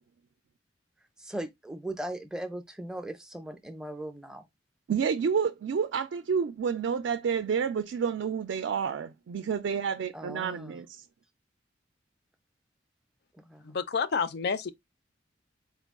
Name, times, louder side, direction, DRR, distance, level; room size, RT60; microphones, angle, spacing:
voice 1, 1.2-4.4 10.1-10.8 13.3-13.8, right 1 dB, 5° right, 0.4 m, -39 dB
voice 2, 4.9-11.0, right 6 dB, 70° right, 0.3 m, -29 dB
voice 3, 13.6-14.7, left 5 dB, 60° left, 0.4 m, -29 dB
4.3 x 2.3 x 3.5 m
head